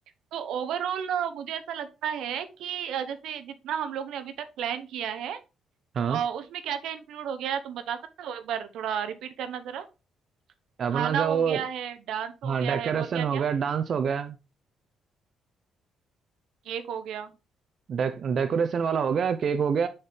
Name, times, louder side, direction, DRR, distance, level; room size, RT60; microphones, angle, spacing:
voice 1, 0.3-5.4 6.1-9.9 10.9-13.5 16.6-17.4, right 8 dB, 80° right, 0.8 m, -32 dB
voice 2, 10.8-11.6 12.4-14.4 17.9-19.9, right 7 dB, 50° right, 0.6 m, -26 dB
6.6 x 4.4 x 3.4 m
cardioid pair, 120°, 0 cm